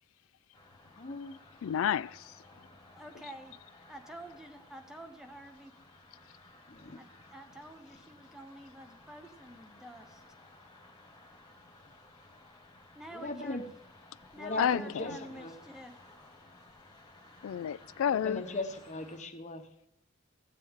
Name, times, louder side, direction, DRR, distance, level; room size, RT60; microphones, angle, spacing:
sound 1, 0.5-19.2, left 2 dB, 20° left, 1.8 m, -57 dB
voice 1, 1.0-1.3 6.7-7.0 13.1-13.6 14.4-15.5 18.0-19.7, left 2 dB, 35° left, 1.0 m, -38 dB
voice 2, 1.6-2.3 14.6-15.1 17.4-18.4, left 9 dB, 75° left, 0.3 m, -30 dB
voice 3, 2.9-3.6 3.9-5.7 7.0-10.2 12.9-13.6 14.3-15.9, right 1 dB, 5° right, 1.0 m, -49 dB
16.0 x 7.6 x 3.7 m
head